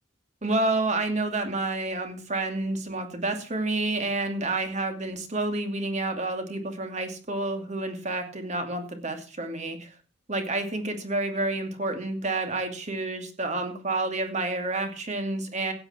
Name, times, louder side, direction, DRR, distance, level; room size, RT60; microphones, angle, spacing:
voice 1, 0.4-9.9 10.3-15.7, right 2 dB, 40° right, 6 dB, 2.6 m, -29 dB
15.5 x 9.0 x 4.4 m, 0.36 s
head